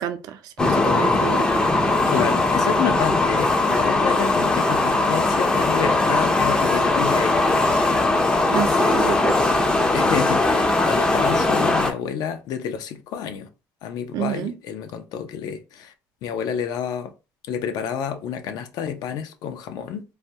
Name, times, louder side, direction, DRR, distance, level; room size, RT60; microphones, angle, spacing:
voice 1, 0.0-1.6 8.5-9.4 14.1-14.5, right 11 dB, 65° right, 0.5 m, -29 dB
sound 1, 0.6-11.9, left 2 dB, 10° left, 0.5 m, -20 dB
voice 2, 2.1-7.6 9.9-13.5 13.8-15.9 16.2-17.1 17.5-20.0, left 8 dB, 65° left, 0.5 m, -29 dB
3.3 x 2.2 x 2.7 m
cardioid pair, 140°, 7 cm